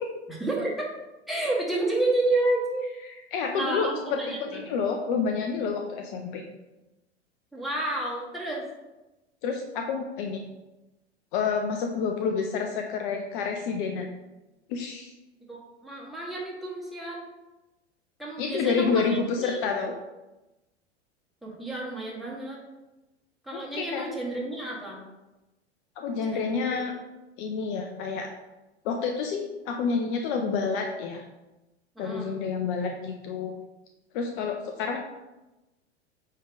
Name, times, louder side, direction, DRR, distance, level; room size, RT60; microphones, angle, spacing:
voice 1, 0.3-0.9 1.3-2.9 3.5-4.6 7.5-8.7 15.5-17.2 18.2-19.6 21.4-22.6 23.4-25.0 26.3-26.8 32.0-32.3, right 2 dB, ahead, -4 dB, 2.2 m, -30 dB
voice 2, 3.1-6.4 9.4-10.4 11.3-14.1 14.7-15.1 18.4-19.9 23.5-24.1 26.0-26.9 27.4-28.3 28.8-31.2 32.0-33.5 34.1-35.0, left 5 dB, 50° left, 3 dB, 0.9 m, -29 dB
8.6 x 3.4 x 4.8 m, 1.0 s
figure-of-eight pair, 90°, 34 cm